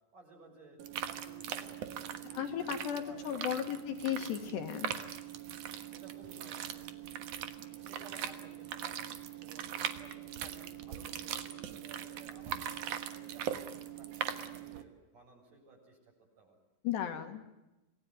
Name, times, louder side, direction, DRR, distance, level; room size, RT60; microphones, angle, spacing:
voice 1, 0.1-3.7 4.1-4.5 5.9-7.3 7.8-9.1 9.4-9.7 10.0-16.6, right 3 dB, 40° right, 0 dB, 8.1 m, -57 dB
sound 1, 0.8-14.8, right 9 dB, 90° right, 1.7 m, -41 dB
voice 2, 2.3-4.9 16.8-17.4, left 10 dB, 65° left, 6 dB, 3.2 m, -35 dB
27.5 x 18.5 x 9.4 m, 1.0 s
omnidirectional pair, 5.8 m